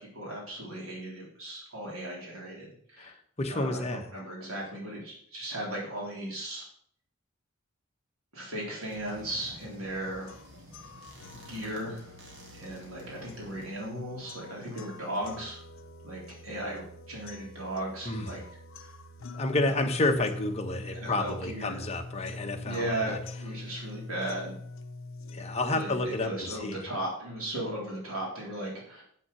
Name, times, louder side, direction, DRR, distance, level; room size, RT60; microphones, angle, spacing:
voice 1, 0.0-3.1 3.5-6.6 8.3-10.4 11.3-12.1 12.5-15.6 16.0-18.4 18.8-18.9 19.7-19.8 21.0-21.8 22.6-24.6 25.7-29.0, right 1 dB, 80° right, -3 dB, 3.8 m, -36 dB
voice 2, 3.0-4.1 18.0-18.3 19.3-23.2 25.3-26.8, left 2 dB, 30° left, 4 dB, 1.1 m, -30 dB
sound 1, 8.8-14.0, equal, 60° right, 2.2 m, -51 dB
sound 2, 10.3-26.3, left 2 dB, 70° left, 0.7 m, -44 dB
7.6 x 6.0 x 6.9 m, 0.62 s
head